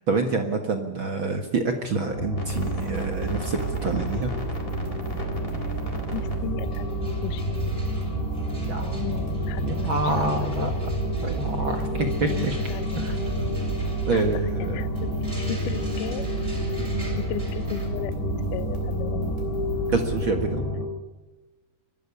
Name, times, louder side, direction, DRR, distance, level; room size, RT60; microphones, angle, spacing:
voice 1, 0.1-4.3 8.6-9.0 9.6-10.7 11.2-11.9 12.2-12.6 13.0-13.2 14.1-14.8 16.8-17.1 19.9-20.7, right 3 dB, 55° right, 5 dB, 1.4 m, -27 dB
sound 1, 2.1-20.9, left 2 dB, 15° left, 3.7 m, -30 dB
sound 2, 2.4-20.2, right 6 dB, 80° right, 5.3 m, -33 dB
voice 2, 6.1-7.5 8.8-10.7 11.9-13.1 14.1-14.3 14.6-16.3 17.2-19.3, left 14 dB, 80° left, 15 dB, 1.9 m, -36 dB
sound 3, 6.3-6.4 6.6-17.9, right 1 dB, 15° right, 6.8 m, -47 dB
23.5 x 13.0 x 9.9 m, 1.2 s
omnidirectional pair, 4.6 m